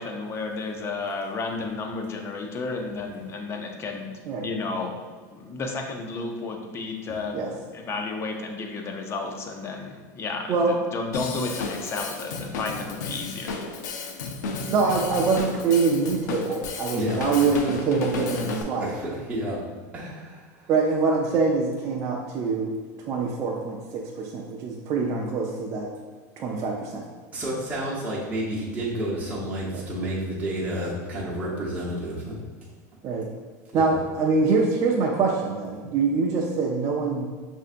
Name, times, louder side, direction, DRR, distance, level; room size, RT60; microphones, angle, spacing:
voice 1, 0.0-5.0 5.3-13.7, left 3 dB, 30° left, 2 dB, 0.5 m, -32 dB
Drum kit / Drum, 11.1-18.6, left 4 dB, 85° left, 0.5 m, -33 dB
voice 2, 14.7-18.9 20.7-22.8 23.0-25.9 26.4-27.0 29.7-29.8 33.0-33.3 33.7-37.3, right 4 dB, 35° right, -2 dB, 0.5 m, -24 dB
voice 3, 16.9-17.5 18.8-19.6 19.9-20.7 27.3-32.3 33.7-34.0, right 1 dB, 15° right, -7 dB, 0.9 m, -30 dB
5.4 x 2.6 x 2.5 m, 1.5 s
supercardioid pair, 135°, 9 cm